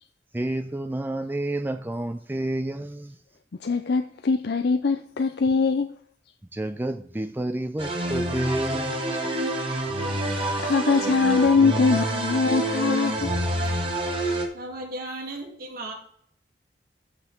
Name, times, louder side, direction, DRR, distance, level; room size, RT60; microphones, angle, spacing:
voice 1, 0.3-3.1 6.5-9.2, right 1 dB, 10° right, 0.4 m, -30 dB
voice 2, 3.6-5.9 10.2-13.3, left 4 dB, 65° left, 0.5 m, -22 dB
sound 1, 7.8-14.5, right 1 dB, 30° right, 2.2 m, -27 dB
voice 3, 14.5-15.9, right 1 dB, 55° right, 2.8 m, -35 dB
14.0 x 5.2 x 4.5 m
head